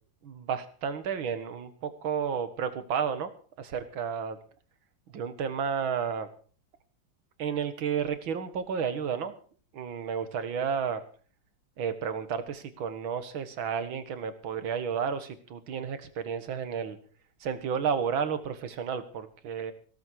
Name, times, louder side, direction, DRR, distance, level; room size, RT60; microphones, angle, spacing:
voice 1, 0.2-3.3 3.6-4.4 5.1-6.3 7.4-9.3 9.7-11.0 11.8-17.0 17.4-19.7, right 7 dB, 75° right, 11 dB, 2.3 m, -32 dB
16.5 x 13.5 x 4.7 m, 0.41 s
omnidirectional pair, 2.2 m